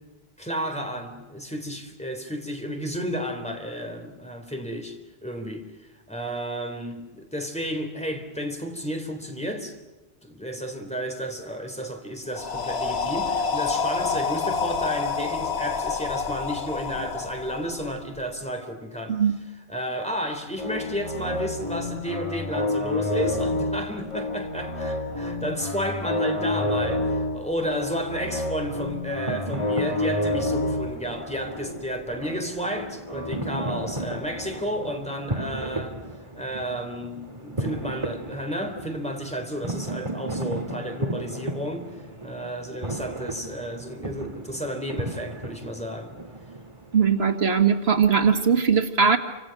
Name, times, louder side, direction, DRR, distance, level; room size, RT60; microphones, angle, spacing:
voice 1, 0.4-5.7 6.1-9.8 10.2-19.2 19.7-36.0 36.3-41.9 42.2-46.1, equal, 5° left, 3.6 m, -32 dB
sound 1, 12.3-18.2, left 5 dB, 85° left, 1.4 m, -28 dB
sound 2, 20.6-34.6, left 2 dB, 30° left, 2.8 m, -29 dB
sound 3, 29.2-47.3, right 2 dB, 30° right, 2.0 m, -35 dB
voice 2, 46.9-49.2, right 6 dB, 85° right, 2.0 m, -20 dB
28.5 x 26.5 x 6.0 m
omnidirectional pair, 1.0 m